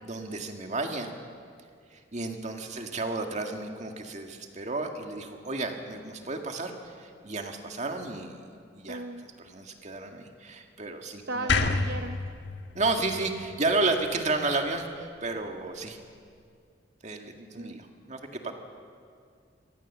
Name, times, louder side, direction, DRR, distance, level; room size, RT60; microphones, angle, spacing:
voice 1, 0.0-1.1 1.9-9.0 9.4-11.5 12.7-16.0 17.0-18.5, right 3 dB, 40° right, 4 dB, 2.0 m, -32 dB
voice 2, 8.9-9.3 11.3-12.2 17.5-17.8, right 2 dB, 60° right, 6 dB, 0.8 m, -36 dB
sound 1, 11.5-14.7, left 3 dB, 75° left, 1.4 m, -30 dB
25.5 x 18.0 x 7.4 m, 2.2 s
head